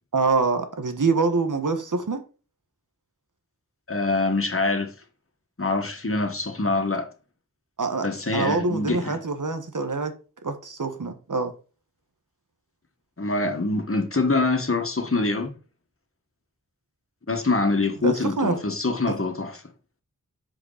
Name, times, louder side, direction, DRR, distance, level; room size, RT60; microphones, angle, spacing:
voice 1, 0.1-2.2 7.8-8.1 8.3-10.1 10.4-11.5 18.0-18.5, right 4 dB, 75° right, 1.4 m, -25 dB
voice 2, 3.9-4.9 5.6-7.1 8.0-9.2 13.2-15.6 17.3-19.6, left 3 dB, 45° left, 1.8 m, -25 dB
7.4 x 5.1 x 5.0 m
wide cardioid pair, 65°, 31 cm